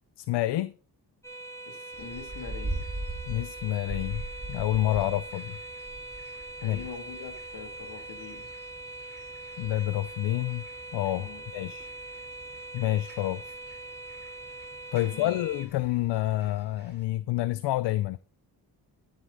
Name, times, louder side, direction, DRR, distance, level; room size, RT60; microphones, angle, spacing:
voice 1, 0.2-0.7 3.3-4.2 4.5-5.6 6.6-6.8 9.6-10.7 10.9-11.9 12.7-13.5 14.9-18.2, left 15 dB, 90° left, 0.6 m, -28 dB
sound 1, 1.2-15.7, right 2 dB, 5° left, 3.7 m, -42 dB
voice 2, 1.7-2.9 4.9-5.1 6.6-8.5 11.1-11.5 15.0-15.4, left 6 dB, 70° left, 2.2 m, -43 dB
sound 2, 1.9-17.1, right 2 dB, 25° right, 3.5 m, -43 dB
12.5 x 7.6 x 3.9 m
cardioid pair, 85°, 40 cm